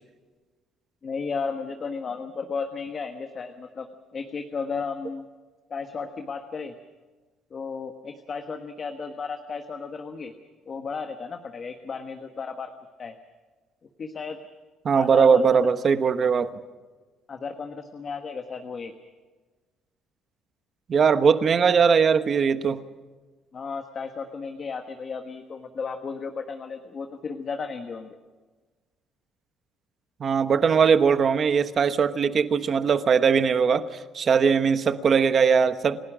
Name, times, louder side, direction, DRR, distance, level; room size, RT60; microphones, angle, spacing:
voice 1, 1.0-5.3 5.7-6.7 7.5-10.3 10.7-12.7 13.0-13.2 14.0-14.4 14.9-15.4 17.3-18.9 23.5-28.2, left 5 dB, 30° left, 6 dB, 1.3 m, -34 dB
voice 2, 14.8-16.5 20.9-22.8 30.2-36.0, right 6 dB, 30° right, 11 dB, 1.1 m, -20 dB
29.0 x 17.5 x 6.2 m, 1.3 s
cardioid pair, 175°, 0 cm